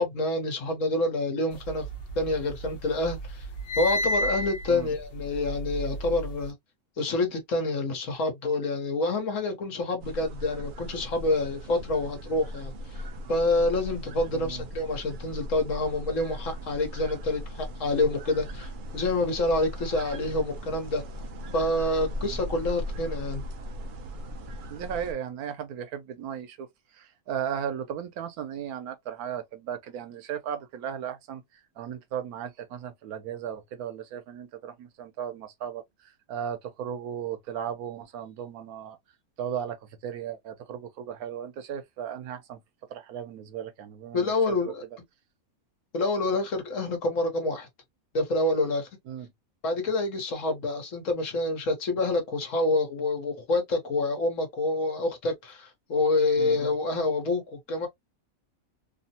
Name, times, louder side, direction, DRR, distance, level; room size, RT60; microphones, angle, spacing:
voice 1, 0.0-1.9 2.2-3.5 3.8-6.5 7.0-13.0 13.3-21.0 21.5-23.4 44.1-44.8 45.9-47.7 48.1-48.9 49.6-57.9, left 2 dB, 60° left, 1.3 m, -27 dB
sound 1, 1.7-2.7 3.0-6.4, equal, 45° left, 1.0 m, -31 dB
sound 2, 10.0-25.1, equal, 70° right, 0.4 m, -38 dB
voice 2, 14.3-14.6 22.2-22.4 24.7-26.7 26.9-31.4 31.8-35.8 36.3-39.0 39.4-42.6 42.9-44.7 49.1-49.3 56.4-56.6, right 8 dB, 90° right, 1.1 m, -36 dB
3.1 x 2.0 x 2.7 m
omnidirectional pair, 1.5 m